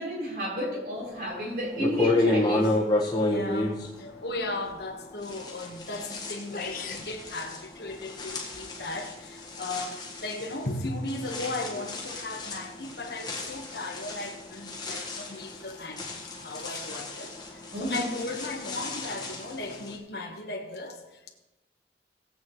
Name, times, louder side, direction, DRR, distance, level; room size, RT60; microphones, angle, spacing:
voice 1, 0.0-2.7 17.7-18.1, equal, 55° right, 4.3 m, -31 dB
sound 1, 1.2-1.3 1.8-4.9 5.2-19.9, left 2 dB, 20° left, 1.5 m, -32 dB
voice 2, 3.2-21.3, left 2 dB, 65° left, 1.4 m, -36 dB
sound 2, 6.2-6.3 6.5-7.1, left 5 dB, 50° left, 1.1 m, -37 dB
19.0 x 8.2 x 3.1 m
head